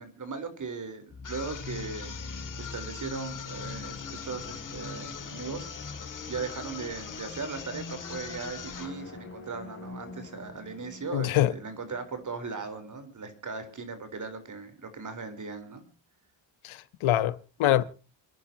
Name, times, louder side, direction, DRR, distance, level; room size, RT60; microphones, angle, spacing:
voice 1, 0.0-15.8, right 4 dB, 40° right, 4.2 m, -38 dB
sound 1, 1.1-12.6, left 4 dB, 25° left, 3.0 m, -43 dB
sound 2, 1.2-9.0, left 7 dB, 40° left, 2.0 m, -42 dB
voice 2, 11.1-11.5 16.6-17.8, left 13 dB, 80° left, 1.2 m, -25 dB
28.5 x 11.0 x 2.9 m
cardioid pair, 110°, 47 cm